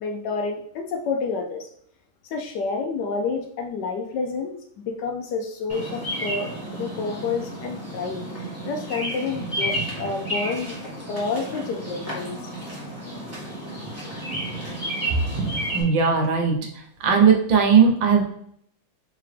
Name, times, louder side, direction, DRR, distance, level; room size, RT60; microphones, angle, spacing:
voice 1, 0.0-1.7 2.3-10.8 11.1-12.4, left 4 dB, 70° left, 3 dB, 1.1 m, -29 dB
Bird vocalization bird call bird song, 5.7-15.8, right 1 dB, 10° right, 1.1 m, -31 dB
voice 2, 15.7-16.5 17.0-18.2, right 6 dB, 75° right, 2 dB, 1.6 m, -17 dB
3.7 x 3.4 x 3.3 m, 0.67 s
omnidirectional pair, 2.1 m